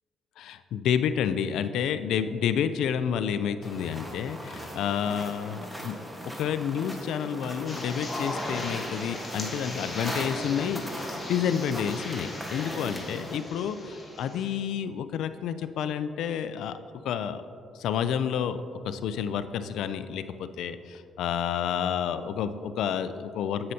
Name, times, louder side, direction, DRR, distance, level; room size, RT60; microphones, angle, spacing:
voice 1, 0.4-6.0 6.4-16.8 17.0-17.4 17.7-18.6 18.8-23.7, left 8 dB, 80° left, 11 dB, 0.3 m, -29 dB
sound 1, 3.6-13.4, equal, 5° right, 1.3 m, -39 dB
sound 2, 7.7-14.5, left 2 dB, 20° left, 1.5 m, -38 dB
9.6 x 7.6 x 2.7 m, 2.5 s
cardioid pair, 90°, 0 cm